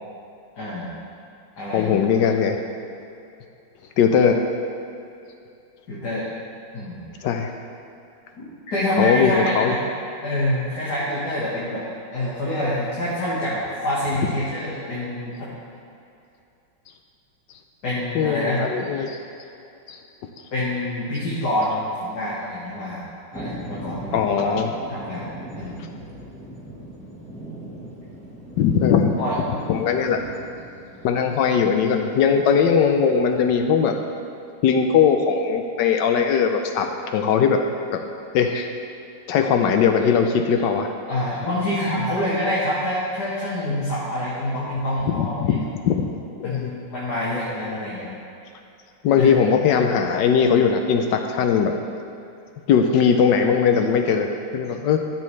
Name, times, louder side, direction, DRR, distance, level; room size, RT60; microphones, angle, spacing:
voice 1, 0.6-0.9 1.6-2.0 5.9-6.2 6.7-7.0 8.4-9.8 10.2-11.8 12.1-15.5 17.8-18.6 20.5-23.0 23.3-24.5 24.9-25.3 25.6-25.8 29.2-29.4 41.1-45.6 46.4-48.1 49.1-49.4, left 1 dB, 50° left, -9 dB, 2.1 m, -26 dB
voice 2, 1.7-2.6 4.0-4.4 7.2-7.5 9.0-9.7 18.1-19.2 19.9-20.0 24.1-24.7 28.6-29.1 29.7-30.2 31.0-33.9 34.6-37.6 37.9-38.0 38.3-38.7 39.3-40.9 45.1-46.1 46.4-46.7 49.0-51.7 52.7-55.0, left 6 dB, 75° left, 5 dB, 1.1 m, -19 dB
sound 1, 23.3-33.6, right 1 dB, 5° left, 1.0 m, -39 dB
13.0 x 7.6 x 3.2 m, 2.6 s
omnidirectional pair, 2.3 m